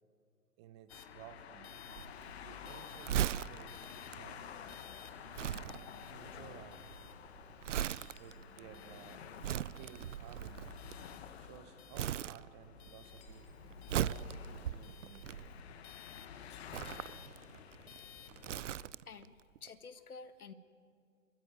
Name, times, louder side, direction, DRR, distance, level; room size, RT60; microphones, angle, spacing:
voice 1, 0.6-1.8 2.4-3.9 4.2-4.5 5.5-6.9 8.2-10.7 11.4-13.5 13.9-15.4, right 10 dB, 20° right, 11 dB, 0.8 m, -56 dB
sound 1, 0.9-18.9, left 8 dB, 45° left, 1.6 m, -50 dB
Crumpling crinkling, 1.9-11.6 11.9-12.9 13.2-15.9 16.6-19.3 19.6-19.7, right 11 dB, 55° right, 0.6 m, -39 dB
sound 2, 3.3-3.8 5.4-5.6 7.8-8.4 10.2-10.4 13.0-13.6 16.5-16.9, left 5 dB, 15° left, 2.0 m, -66 dB
voice 2, 19.1-20.5, left 5 dB, 80° left, 12 dB, 1.8 m, -50 dB
29.5 x 14.0 x 9.4 m, 2.3 s
hypercardioid pair, 140°, 44 cm